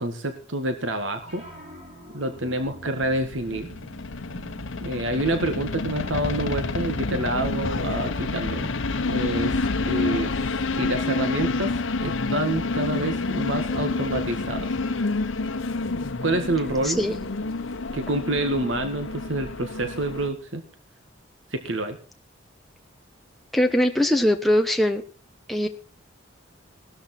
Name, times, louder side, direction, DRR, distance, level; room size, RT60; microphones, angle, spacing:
voice 1, 0.0-1.4 2.1-3.7 4.8-8.7 9.1-10.3 10.8-11.7 12.0-14.7 16.2-17.0 17.9-20.6 21.5-22.0, right 1 dB, 80° right, 7 dB, 1.9 m, -27 dB
sound 1, 1.2-7.3, right 1 dB, 35° right, 7.4 m, -45 dB
sound 2, 2.6-20.3, left 3 dB, 85° left, 1.0 m, -28 dB
voice 2, 23.5-25.0 25.5-25.7, left 1 dB, ahead, 3 dB, 1.1 m, -21 dB
17.5 x 13.0 x 4.5 m, 0.39 s
head